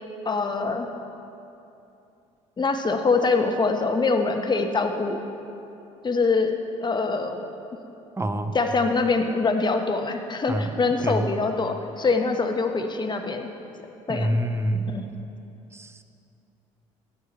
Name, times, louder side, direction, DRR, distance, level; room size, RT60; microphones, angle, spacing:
voice 1, 0.2-0.9 2.6-5.2 6.0-7.5 8.5-13.5 14.1-14.4 14.9-15.0, left 4 dB, 25° left, 5 dB, 1.0 m, -24 dB
voice 2, 8.2-8.6 10.5-10.7 11.0-11.3 14.1-14.9 15.7-16.0, right 1 dB, 15° right, 9 dB, 0.7 m, -26 dB
12.0 x 9.4 x 4.1 m, 2.8 s
hypercardioid pair, 60°, 16 cm